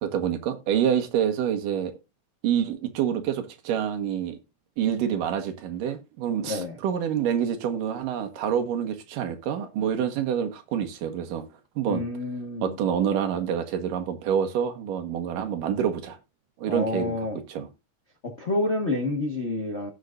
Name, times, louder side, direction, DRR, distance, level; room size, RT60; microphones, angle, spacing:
voice 1, 0.0-1.9 2.4-4.4 4.8-11.4 11.8-12.0 12.6-16.2 16.6-17.2 17.5-17.7, right 8 dB, 85° right, 3.0 m, -27 dB
voice 2, 6.4-6.7 11.9-12.8 16.7-17.4 18.2-19.9, left 2 dB, 80° left, 0.6 m, -28 dB
17.5 x 6.4 x 2.5 m
omnidirectional pair, 3.8 m